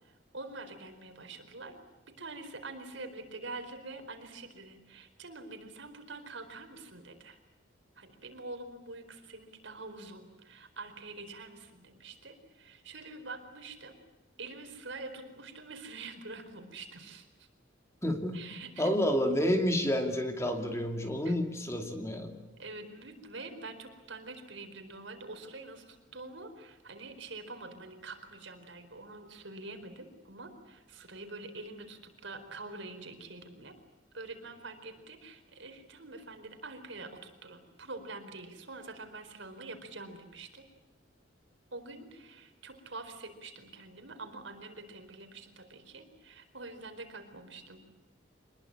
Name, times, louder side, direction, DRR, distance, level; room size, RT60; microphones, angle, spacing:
voice 1, 0.0-1.8 2.1-7.4 8.0-14.0 14.4-17.5 18.3-19.0 21.2-21.4 22.6-33.8 34.1-40.7 41.7-47.8, right 3 dB, 70° right, 6 dB, 4.5 m, -46 dB
voice 2, 18.0-18.4 18.8-22.4, equal, 15° left, 4 dB, 2.5 m, -29 dB
27.0 x 21.0 x 8.8 m, 1.1 s
head